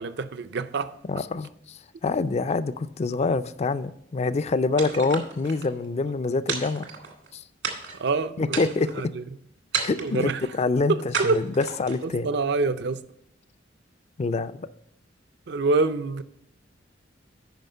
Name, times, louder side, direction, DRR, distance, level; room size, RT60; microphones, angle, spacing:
voice 1, 0.0-0.9 4.9-5.0 8.0-9.2 10.0-10.4 10.9-11.4 12.0-13.0 15.5-16.2, right 3 dB, 65° right, 0.5 m, -26 dB
voice 2, 1.1-6.9 7.3-7.4 8.4-8.9 9.8-10.3 10.6-12.3 14.2-14.7, left 3 dB, 35° left, 0.4 m, -26 dB
sound 1, 4.8-5.7 6.5-7.3 7.6-8.1 8.5-9.0 9.7-10.3 11.1-12.1, right 6 dB, 85° right, 1.9 m, -32 dB
9.1 x 5.6 x 5.4 m
head